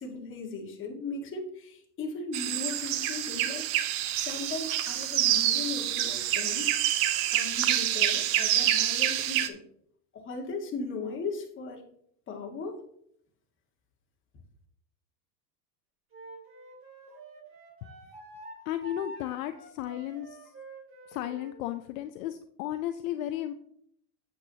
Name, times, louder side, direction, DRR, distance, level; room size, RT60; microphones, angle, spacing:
voice 1, 0.0-6.7 7.3-9.6 10.1-11.8 12.3-12.8, left 3 dB, 25° left, 1 dB, 1.8 m, -37 dB
sound 1, 2.3-9.5, right 12 dB, 55° right, 0.9 m, -27 dB
Wind instrument woodwind instrument, 16.1-21.6, right 2 dB, 25° right, 2.8 m, -47 dB
voice 2, 18.7-20.5 21.1-23.5, left 12 dB, 60° left, 8 dB, 0.7 m, -34 dB
8.5 x 7.9 x 2.8 m, 0.67 s
supercardioid pair, 135°, 48 cm